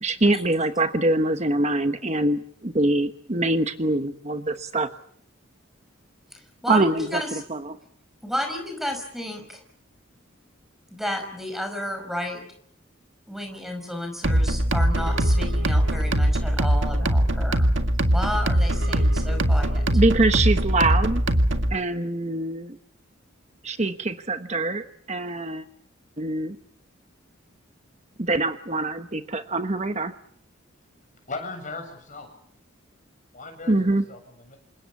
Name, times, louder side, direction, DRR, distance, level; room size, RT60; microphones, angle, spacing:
voice 1, 0.0-4.9 6.7-7.8 19.9-21.2 21.7-22.8 23.6-25.7 26.2-26.6 28.2-30.1 33.7-34.0, right 2 dB, 35° right, 8 dB, 1.1 m, -24 dB
voice 2, 6.3-7.3 8.2-9.6 10.9-12.4 13.3-17.7 18.1-19.8, left 1 dB, ahead, 6 dB, 5.3 m, -32 dB
sound 1, 14.2-21.7, right 1 dB, 65° right, 1.9 m, -21 dB
voice 3, 31.3-32.3 33.3-34.6, left 3 dB, 40° left, 4 dB, 7.6 m, -37 dB
28.0 x 25.5 x 7.2 m, 0.67 s
head